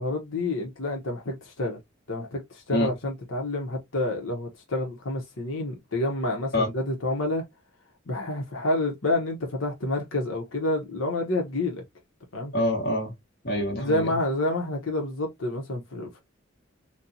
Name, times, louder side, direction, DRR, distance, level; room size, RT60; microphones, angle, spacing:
voice 1, 0.0-1.8 2.1-7.4 8.1-11.8 12.3-12.5 13.8-16.2, left 1 dB, 90° left, 1.0 m, -28 dB
voice 2, 12.5-13.1 13.4-14.1, left 1 dB, 55° left, 1.4 m, -25 dB
4.3 x 2.3 x 2.7 m
head